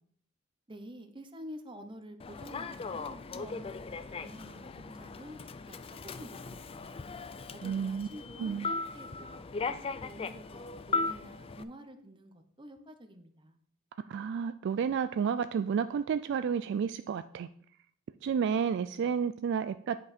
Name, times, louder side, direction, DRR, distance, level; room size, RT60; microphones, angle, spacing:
voice 1, 0.7-5.4 5.6-6.9 7.5-13.6, equal, 25° right, 7 dB, 0.8 m, -49 dB
Human voice / Subway metro underground, 2.2-11.6, left 4 dB, 25° left, 0.4 m, -38 dB
voice 2, 7.6-8.1 8.4-8.7 14.1-17.5 18.2-20.0, right 7 dB, 60° right, 12 dB, 0.3 m, -31 dB
9.3 x 5.3 x 4.2 m, 0.64 s
head